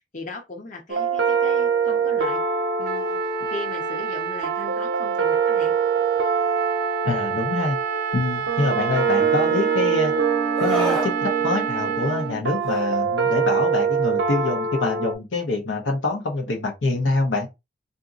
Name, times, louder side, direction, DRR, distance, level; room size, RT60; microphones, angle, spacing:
voice 1, 0.1-2.4 2.8-3.2 3.5-5.7, left 2 dB, 45° left, 0.8 m, -38 dB
sound 1, 0.9-15.1, right 6 dB, 70° right, 0.7 m, -24 dB
Trumpet, 2.8-12.3, right 8 dB, 55° right, 0.3 m, -29 dB
voice 2, 7.0-7.8 8.1-10.1 10.6-17.5, left 3 dB, 90° left, 0.8 m, -25 dB
Screaming, 10.6-11.1 12.6-12.8, right 1 dB, ahead, 0.6 m, -27 dB
3.7 x 2.6 x 2.5 m
head